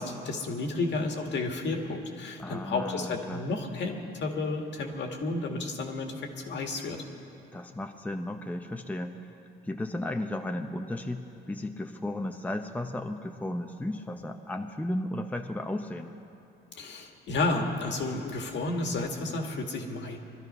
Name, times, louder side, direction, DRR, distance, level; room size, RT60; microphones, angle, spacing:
voice 1, 0.0-7.0 16.8-20.2, left 3 dB, 65° left, 3 dB, 1.8 m, -32 dB
voice 2, 2.4-3.4 7.5-9.2 9.6-16.1, left 1 dB, 10° left, 4 dB, 0.7 m, -34 dB
21.0 x 12.5 x 5.5 m, 2.7 s
cardioid pair, 90°, 20 cm